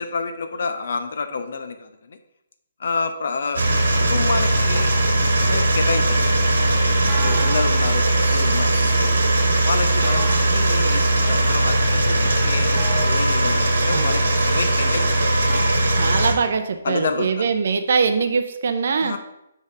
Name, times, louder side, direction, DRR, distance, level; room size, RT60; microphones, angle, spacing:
voice 1, 0.0-2.2 2.8-3.7 4.1-4.9 5.4-6.4 7.2-9.2 9.6-15.7 16.8-17.5 19.0-19.2, left 4 dB, 65° left, 8 dB, 0.7 m, -29 dB
sound 1, 3.5-16.3, right 1 dB, 85° right, 1.3 m, -19 dB
sound 2, 4.7-5.0 7.1-7.8 10.0-10.6 12.8-13.4 15.5-15.8, right 2 dB, 10° right, 0.9 m, -35 dB
voice 2, 16.0-19.1, right 5 dB, 60° right, 7 dB, 0.5 m, -22 dB
4.9 x 4.1 x 5.3 m, 0.85 s
hypercardioid pair, 150°, 0 cm